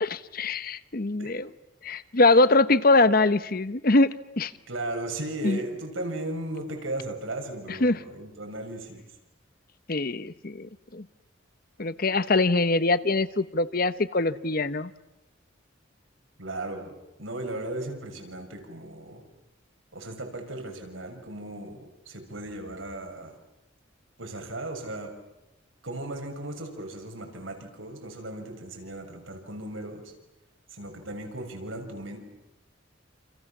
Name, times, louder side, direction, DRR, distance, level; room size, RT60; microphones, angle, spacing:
voice 1, 0.0-1.5 1.8-4.5 5.4-5.6 7.8-8.0 9.9-11.0 11.8-14.9, left 2 dB, 50° left, 14 dB, 1.0 m, -23 dB
voice 2, 4.7-9.1 16.4-16.9 17.2-19.2 19.9-23.3 24.2-25.1 25.8-30.1 30.7-32.2, right 1 dB, 90° right, 4 dB, 6.6 m, -36 dB
28.5 x 28.5 x 7.3 m, 0.95 s
head